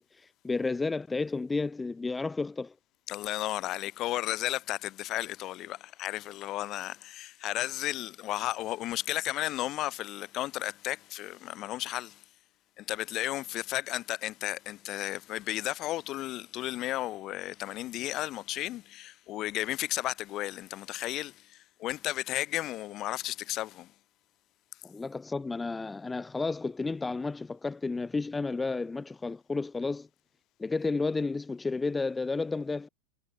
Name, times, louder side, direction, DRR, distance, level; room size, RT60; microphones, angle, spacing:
voice 1, 0.0-2.7 24.8-30.1 30.6-32.9, left 3 dB, 10° left, 1.8 m, -32 dB
voice 2, 3.1-12.2 12.8-23.9, left 15 dB, 35° left, 1.9 m, -34 dB
supercardioid pair, 140°, 0 cm